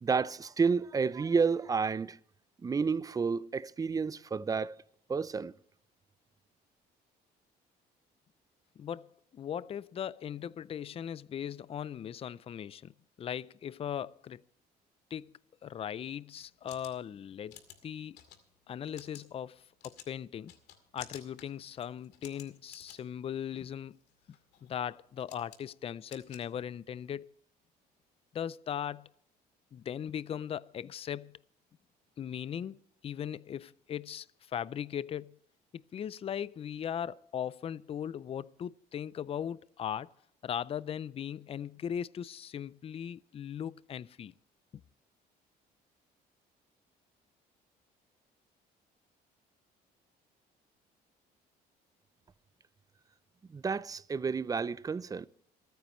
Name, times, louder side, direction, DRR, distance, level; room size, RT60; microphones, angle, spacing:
voice 1, 0.0-2.2 2.6-4.7 5.1-5.5 53.5-55.3, right 5 dB, 20° right, 0.5 m, -30 dB
voice 2, 8.8-12.9 13.2-14.4 15.1-15.3 15.6-18.2 18.7-20.5 20.9-24.0 24.6-27.3 28.3-29.1 29.7-31.4 32.2-32.8 33.0-35.4 35.7-40.1 40.4-44.3, left 9 dB, 35° left, 0.4 m, -38 dB
sound 1, 16.4-27.1, left 10 dB, 80° left, 2.2 m, -55 dB
27.5 x 9.3 x 3.1 m
cardioid pair, 110°, 17 cm